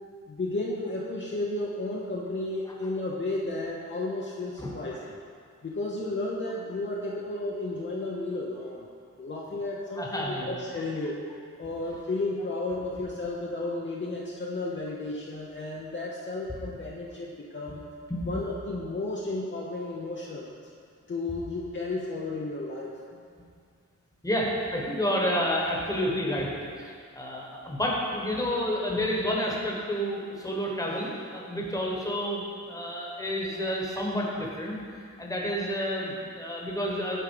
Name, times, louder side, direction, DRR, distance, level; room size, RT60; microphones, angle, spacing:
voice 1, 0.3-5.1 5.6-8.9 9.2-11.2 11.6-17.8 18.2-20.5 21.1-22.9, left 2 dB, 40° left, -4 dB, 0.7 m, -33 dB
voice 2, 9.9-10.5 18.1-18.3 24.2-26.5 26.8-37.2, equal, 10° left, -3 dB, 1.3 m, -30 dB
9.8 x 3.7 x 4.9 m, 2.2 s
wide cardioid pair, 100°, 30 cm